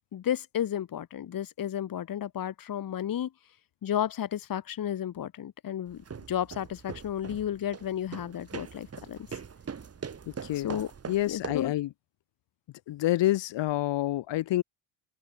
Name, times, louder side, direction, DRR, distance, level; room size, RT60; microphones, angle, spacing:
voice 1, 0.1-3.3 3.8-6.0 6.3-9.2 10.6-10.9 11.3-11.7, left 10 dB, 40° left, 3.5 m, -32 dB
sound 1, 5.9-11.8, right 6 dB, 30° right, 7.7 m, -42 dB
voice 2, 10.4-10.8 11.1-11.9 12.9-14.6, left 15 dB, 60° left, 5.2 m, -28 dB
open air
supercardioid pair, 105°, 49 cm